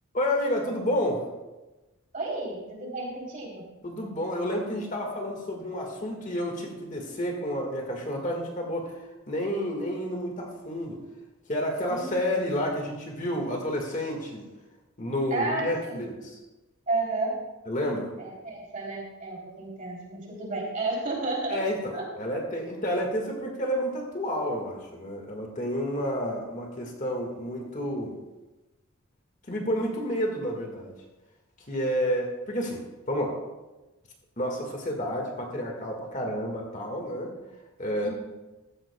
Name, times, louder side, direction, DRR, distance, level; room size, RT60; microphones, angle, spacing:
voice 1, 0.1-1.2 3.8-11.0 11.5-14.5 15.0-16.4 17.7-18.1 21.5-28.1 29.5-30.9 31.6-32.8 33.1-33.4 34.4-37.3 37.8-38.1, equal, 35° left, 1 dB, 1.7 m, -30 dB
voice 2, 2.1-3.6 11.9-12.2 15.3-16.0 16.9-17.4 18.2-21.6 21.9-22.0 38.0-38.1, right 2 dB, 35° right, -3 dB, 3.2 m, -32 dB
15.0 x 13.5 x 2.2 m, 1.1 s
head